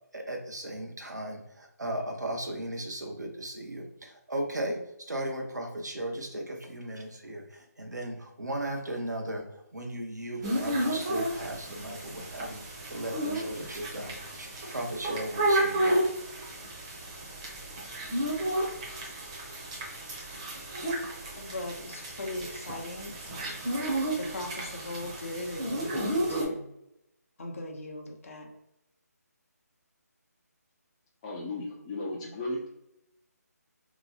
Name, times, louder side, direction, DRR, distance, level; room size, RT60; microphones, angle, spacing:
voice 1, 0.1-15.9, right 1 dB, 85° right, 2 dB, 0.8 m, -36 dB
sound 1, 10.4-26.4, right 1 dB, 25° right, 0.6 m, -32 dB
voice 2, 21.4-26.7 27.4-28.5, left 2 dB, 50° left, 2 dB, 0.7 m, -39 dB
voice 3, 31.2-32.6, left 2 dB, 20° left, -2 dB, 0.4 m, -35 dB
2.9 x 2.0 x 3.8 m, 0.82 s
figure-of-eight pair, 155°, 9 cm